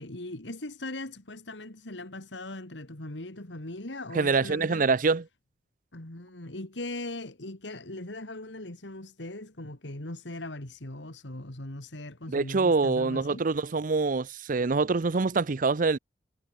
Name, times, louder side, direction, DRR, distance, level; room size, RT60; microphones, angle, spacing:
voice 1, 0.0-4.9 5.9-13.5, left 2 dB, 85° left, 2.7 m, -39 dB
voice 2, 4.1-5.2 12.3-16.0, right 4 dB, 50° right, 0.6 m, -25 dB
head